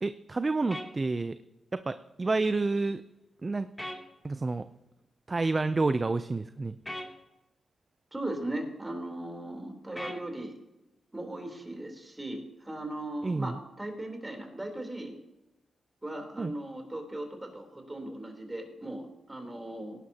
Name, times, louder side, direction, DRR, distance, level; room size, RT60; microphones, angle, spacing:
voice 1, 0.0-1.4 1.7-3.0 3.4-3.7 4.2-4.7 5.3-6.8 13.2-13.6 16.4-16.5, right 3 dB, 35° right, 12 dB, 0.5 m, -29 dB
sound 1, 0.7-0.9 3.8-4.0 6.9-7.1 10.0-10.2, left 1 dB, 10° left, 2.8 m, -37 dB
voice 2, 8.1-10.6 11.1-15.1 16.0-20.0, right 1 dB, 20° right, 3 dB, 3.5 m, -38 dB
18.5 x 11.0 x 2.9 m, 0.98 s
cardioid pair, 55°, 0 cm